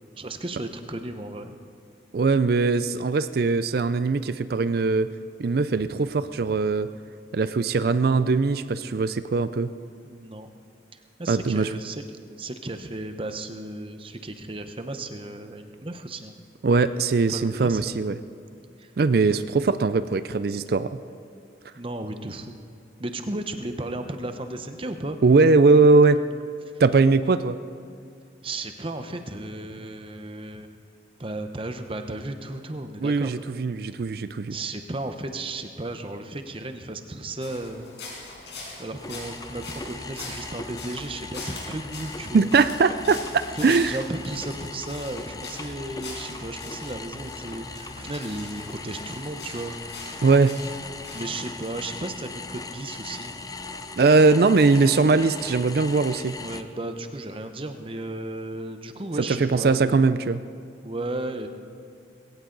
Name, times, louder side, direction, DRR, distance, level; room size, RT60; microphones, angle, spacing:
voice 1, 0.2-1.6 10.0-10.5 10.9-12.0 12.4-16.3 17.3-17.8 18.8-18.9 21.8-22.6 23.0-25.2 28.4-30.7 31.2-33.3 34.5-37.9 38.8-42.5 43.5-49.8 51.1-53.3 56.4-60.1 60.8-61.5, right 2 dB, 30° right, 7 dB, 0.8 m, -34 dB
voice 2, 2.1-5.1 5.4-6.9 7.3-9.7 11.3-11.7 16.6-18.2 19.0-20.9 25.2-26.2 26.8-27.6 33.0-34.6 42.3-44.0 50.2-50.6 54.0-56.4 59.4-60.4, right 4 dB, 55° right, 13 dB, 0.4 m, -20 dB
sound 1, 37.4-51.7, left 3 dB, 70° left, 5.2 m, -42 dB
sound 2, 39.0-56.6, left 3 dB, 20° left, 0.5 m, -39 dB
20.5 x 17.0 x 3.9 m, 2.4 s
head